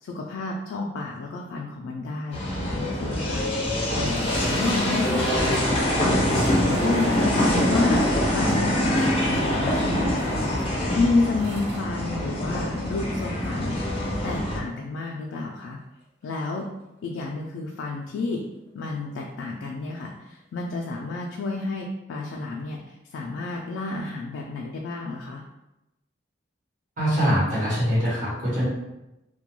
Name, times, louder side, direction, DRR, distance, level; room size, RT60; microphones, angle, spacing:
voice 1, 0.0-3.7 3.9-5.3 6.5-13.8 14.2-15.8 16.2-16.7 17.0-18.4 18.7-25.4, left 3 dB, 85° left, -1 dB, 0.3 m, -30 dB
sound 1, 2.3-14.6, left 1 dB, 30° left, 0.5 m, -24 dB
sound 2, 4.0-13.0 13.2-13.3 13.9-14.0 16.6-16.7, right 1 dB, 60° right, 0.5 m, -38 dB
voice 2, 27.0-28.6, equal, 45° right, -10 dB, 1.1 m, -23 dB
2.2 x 2.2 x 2.9 m, 0.95 s
head